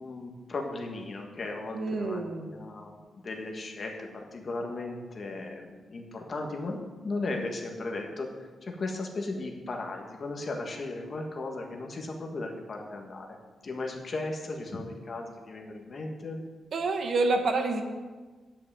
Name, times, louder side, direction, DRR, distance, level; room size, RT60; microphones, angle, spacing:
voice 1, 0.0-2.9 3.2-13.4 13.6-16.4, left 2 dB, 35° left, 1 dB, 1.6 m, -36 dB
voice 2, 1.7-2.6 16.7-17.8, right 3 dB, 55° right, 5 dB, 1.2 m, -28 dB
9.9 x 5.8 x 8.4 m, 1.3 s
wide cardioid pair, 155°, 0 cm